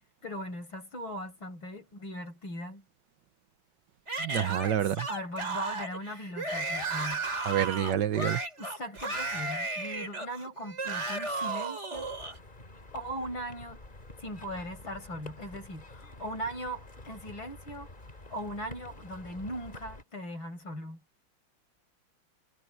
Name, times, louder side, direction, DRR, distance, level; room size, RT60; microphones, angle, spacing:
voice 1, 0.2-2.8 5.0-7.3 8.6-12.1 12.9-13.8 14.2-17.9 18.3-21.0, equal, 70° left, 6.3 m, -39 dB
Yell / Screaming, 4.1-12.4, right 3 dB, 30° right, 4.5 m, -34 dB
voice 2, 4.2-5.1 7.5-8.4, right 10 dB, 65° right, 1.4 m, -28 dB
sound 1, 11.9-20.0, left 2 dB, 25° left, 2.6 m, -49 dB
omnidirectional pair, 2.2 m